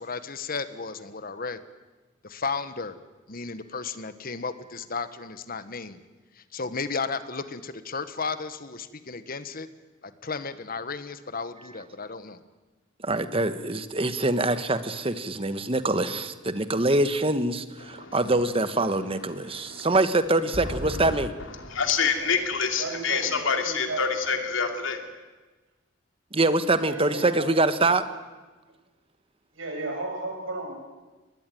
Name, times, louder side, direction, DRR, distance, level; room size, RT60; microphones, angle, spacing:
voice 1, 0.0-1.6 2.2-2.9 3.3-6.0 6.4-9.7 10.0-12.4, left 4 dB, 45° left, 12 dB, 1.3 m, -34 dB
voice 2, 13.0-21.3 26.3-28.0, right 2 dB, 30° right, 11 dB, 1.2 m, -24 dB
voice 3, 19.5-19.9 20.8-21.2 21.6-25.1, left 5 dB, 75° left, 5 dB, 2.8 m, -27 dB
voice 4, 22.8-24.1 26.9-27.5 29.5-30.7, right 2 dB, 90° right, 2 dB, 6.8 m, -34 dB
22.5 x 20.0 x 9.2 m, 1.2 s
head